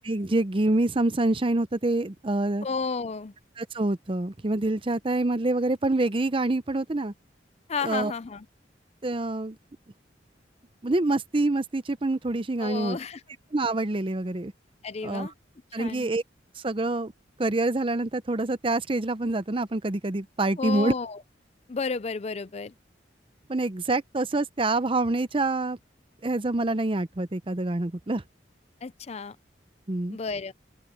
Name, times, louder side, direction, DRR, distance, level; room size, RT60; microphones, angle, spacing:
voice 1, 0.0-2.7 3.6-7.1 7.8-8.1 9.0-9.6 10.8-13.0 13.5-14.5 15.0-15.3 15.7-16.2 16.6-17.1 17.4-20.9 23.5-25.8 26.2-28.2 29.9-30.2, right 2 dB, 30° right, 0.7 m, -26 dB
voice 2, 2.6-3.3 7.7-8.5 12.6-13.2 14.8-15.3 15.8-16.1 20.6-21.2 21.7-22.7 28.8-29.4 30.1-30.5, left 4 dB, 35° left, 0.5 m, -32 dB
open air
head